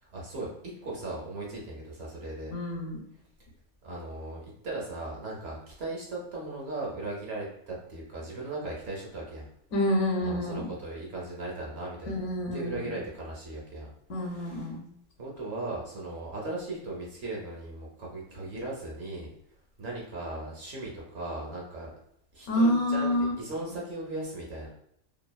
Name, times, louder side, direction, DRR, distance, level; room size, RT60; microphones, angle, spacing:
voice 1, 0.0-2.5 3.8-9.5 10.2-13.9 14.2-14.7 15.2-19.3 19.8-21.9 22.3-23.1 23.4-24.7, right 2 dB, 60° right, -3 dB, 0.9 m, -38 dB
voice 2, 2.5-3.0 9.7-10.7 12.1-12.9 14.1-14.8 22.5-23.3, left 1 dB, 70° left, 1 dB, 1.0 m, -27 dB
2.9 x 2.3 x 2.2 m, 0.74 s
omnidirectional pair, 1.4 m